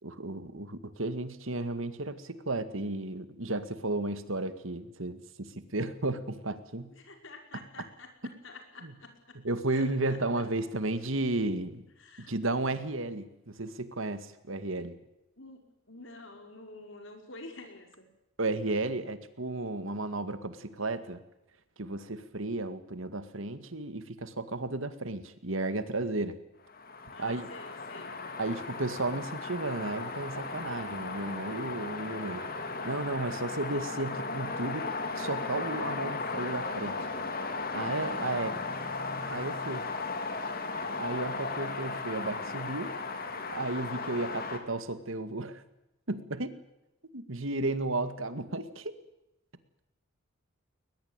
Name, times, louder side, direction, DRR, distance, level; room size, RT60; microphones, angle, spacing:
voice 1, 0.0-6.9 7.5-7.6 8.8-8.9 9.4-11.8 12.2-15.0 18.4-21.2 21.8-26.4 27.2-27.5 28.4-32.4 32.8-37.0 37.7-38.6 39.3-39.8 41.0-42.9 43.5-45.6 46.1-46.5 47.1-48.9, right 2 dB, 70° right, 12 dB, 2.0 m, -33 dB
voice 2, 6.9-9.4 9.7-10.4 12.0-12.3 15.4-18.1 27.1-28.2, left 2 dB, 65° left, 5 dB, 5.3 m, -49 dB
sound 1, 26.7-44.6, left 3 dB, 45° left, 3.2 m, -36 dB
21.5 x 20.5 x 9.0 m, 0.90 s
head